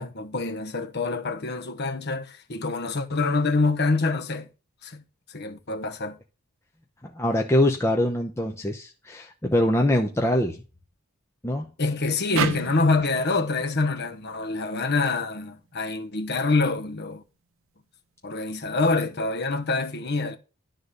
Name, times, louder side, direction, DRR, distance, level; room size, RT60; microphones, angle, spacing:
voice 1, 0.0-4.5 4.8-5.0 5.3-6.2 11.8-17.2 18.2-20.4, left 3 dB, 50° left, 1.0 m, -26 dB
voice 2, 7.0-10.6 11.4-11.7, left 1 dB, 10° left, 0.8 m, -23 dB
sound 1, 12.4-15.6, right 5 dB, 65° right, 0.7 m, -33 dB
11.5 x 3.9 x 6.6 m
head